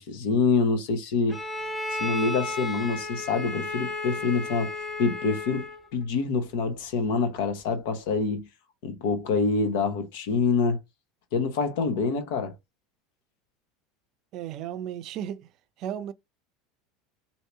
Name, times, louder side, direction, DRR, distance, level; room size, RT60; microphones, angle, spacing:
voice 1, 0.0-1.4 2.0-8.5 8.8-10.8 11.3-12.5, left 4 dB, 70° left, 0.9 m, -26 dB
Bowed string instrument, 1.3-5.9, left 2 dB, 10° left, 1.4 m, -33 dB
voice 2, 14.3-15.5 15.8-16.1, right 10 dB, 55° right, 0.5 m, -34 dB
2.8 x 2.8 x 3.3 m
hypercardioid pair, 85°, 0 cm